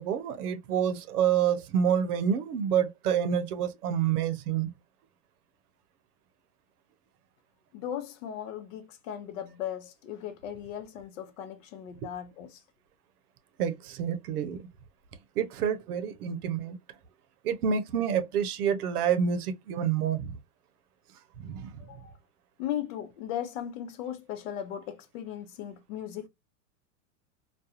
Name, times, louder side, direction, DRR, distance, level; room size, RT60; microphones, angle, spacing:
voice 1, 0.0-4.7 12.0-12.1 13.6-14.6 15.4-16.8 17.4-20.3 21.4-21.8, right 8 dB, 80° right, 0.7 m, -28 dB
voice 2, 7.7-12.6 21.8-22.2 22.6-26.3, left 10 dB, 60° left, 0.7 m, -37 dB
2.4 x 2.2 x 2.7 m
hypercardioid pair, 125°, 45 cm